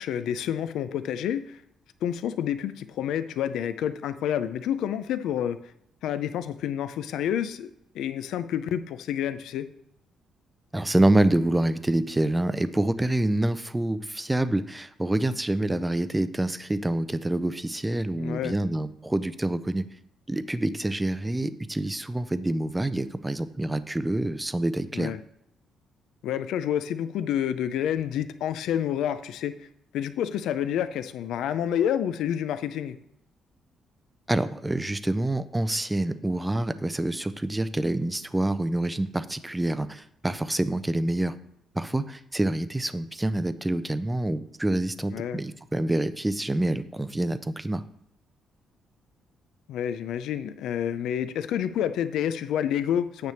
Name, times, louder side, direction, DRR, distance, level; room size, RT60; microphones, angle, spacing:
voice 1, 0.0-1.6 2.0-5.6 6.0-7.7 7.9-9.7 18.2-18.6 24.9-25.2 26.2-29.5 29.9-33.0 45.1-45.4 49.7-53.3, left 10 dB, 80° left, 12 dB, 0.5 m, -29 dB
voice 2, 10.7-19.8 20.3-25.1 34.3-41.3 41.7-47.8, right 1 dB, 10° right, 13 dB, 0.4 m, -27 dB
9.2 x 3.4 x 6.9 m, 0.77 s
cardioid pair, 160°, 0 cm